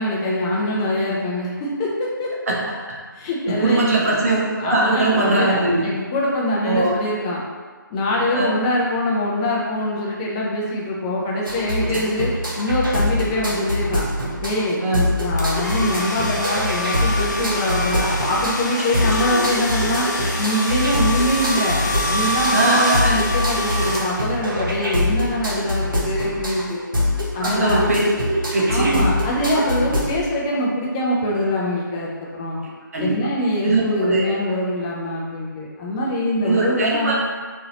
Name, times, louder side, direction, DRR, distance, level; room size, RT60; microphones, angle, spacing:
voice 1, 0.0-2.3 3.2-3.8 4.6-7.4 7.9-12.3 12.6-14.0 14.4-20.1 20.4-21.8 22.1-26.8 27.3-27.8 28.7-32.6 33.0-37.2, left 1 dB, 15° left, -4 dB, 0.4 m, -23 dB
voice 2, 3.5-5.8 6.6-7.0 8.3-8.5 11.9-12.0 14.8-15.0 19.3-19.4 22.5-23.2 27.4-28.9 32.9-33.1 33.6-34.3 36.4-37.1, right 2 dB, 45° right, -3 dB, 0.7 m, -20 dB
sound 1, 11.5-30.2, left 1 dB, 75° right, 0.9 m, -24 dB
sound 2, 15.4-24.5, equal, 55° left, 0.6 m, -26 dB
3.8 x 2.6 x 2.8 m, 1.5 s
figure-of-eight pair, 150°, 11 cm